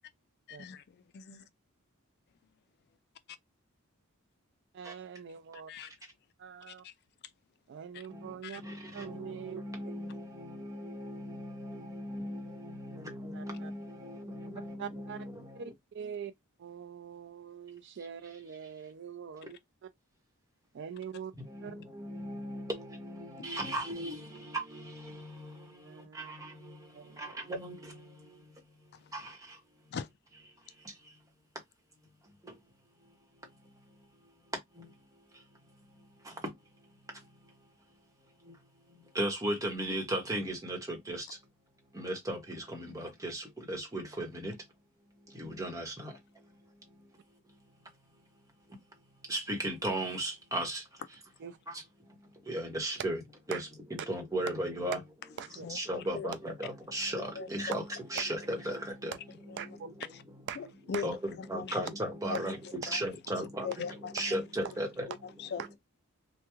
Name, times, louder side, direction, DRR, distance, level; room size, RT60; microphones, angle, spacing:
voice 1, 0.5-1.4 5.7-5.9 6.7-6.9 7.9-8.0 8.4-8.6 28.9-29.1 29.9-30.1 55.6-56.3 57.4-57.8 59.5-59.6 60.6-61.1 61.4-61.8 62.3-62.4 62.9-63.0 63.6-64.1 65.1-65.6, left 6 dB, 50° left, 0.3 m, -40 dB
voice 2, 4.7-5.7 6.4-6.8 7.7-8.6 8.9-9.6 13.3-13.7 14.8-15.3 15.5-16.3 16.6-19.9 20.7-21.3 21.6-21.8 25.8-26.3 26.9-27.2 51.4-51.6 53.5-53.6 55.4-55.7 59.6-59.9 60.5-61.0 65.6-65.7, right 7 dB, 55° right, 0.4 m, -43 dB
voice 3, 8.1-15.7 21.4-29.9 30.5-31.2 32.2-32.6 33.0-37.7 38.2-41.4 41.9-44.7 45.2-47.1 47.4-47.6 48.7-48.8 49.2-51.0 51.7-53.2 53.5-55.0 55.7-57.8 58.1-59.1 61.0-65.1, right 1 dB, 15° right, 1.1 m, -38 dB
3.4 x 2.2 x 3.0 m
head